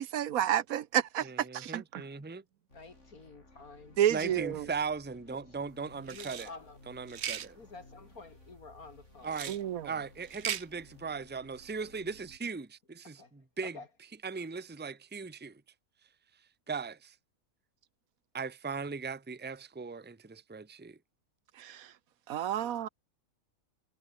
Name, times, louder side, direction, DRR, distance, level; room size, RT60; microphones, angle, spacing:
voice 1, 0.0-2.0 4.0-4.7 9.5-9.9 21.6-21.9 22.3-22.9, right 11 dB, 75° right, 1.2 m, -30 dB
voice 2, 1.2-2.4 4.1-6.5 6.9-7.6 9.2-9.6 9.8-13.8 14.2-15.6 16.7-17.1 18.3-21.0, right 5 dB, 10° right, 0.8 m, -38 dB
voice 3, 2.7-4.3 5.3-5.7 6.1-6.8 7.6-9.5 13.0-13.3 13.6-13.9 22.5-22.9, left 3 dB, 75° left, 3.5 m, -50 dB
sound 1, 2.7-12.4, left 2 dB, 55° left, 5.4 m, -58 dB
sound 2, 6.1-6.5 7.1-7.5 9.3-9.6 10.2-10.6, right 9 dB, 55° right, 1.0 m, -37 dB
omnidirectional pair, 1.5 m